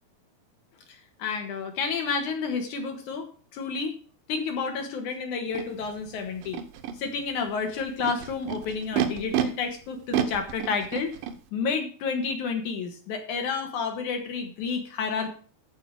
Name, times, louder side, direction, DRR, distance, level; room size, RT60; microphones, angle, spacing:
voice 1, 0.9-4.0 4.3-6.6 7.0-11.1 11.5-15.3, left 5 dB, 60° left, 5 dB, 2.5 m, -30 dB
Animal, 5.5-5.6 6.4-6.9 7.8-9.4 10.1-11.3, right 11 dB, 70° right, 2.4 m, -29 dB
14.0 x 5.0 x 6.2 m, 0.41 s
omnidirectional pair, 4.6 m